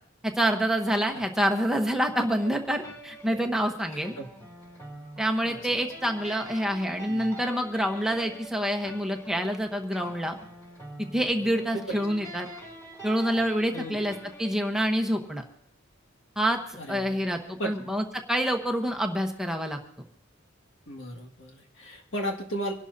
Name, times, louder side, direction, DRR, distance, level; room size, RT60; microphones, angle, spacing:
voice 1, 0.2-4.1 5.2-10.4 11.1-12.5 13.0-15.4 16.4-16.6 16.9-19.8, equal, 5° right, 3 dB, 1.0 m, -27 dB
sound 1, 2.4-15.6, right 1 dB, 15° left, 3.6 m, -45 dB
voice 2, 3.9-4.3 5.4-5.8 7.1-7.4 11.4-12.0 13.7-14.0 16.8-17.2 17.6-17.7 20.9-22.7, equal, 70° left, 0 dB, 2.0 m, -35 dB
25.5 x 12.0 x 2.7 m, 0.64 s
head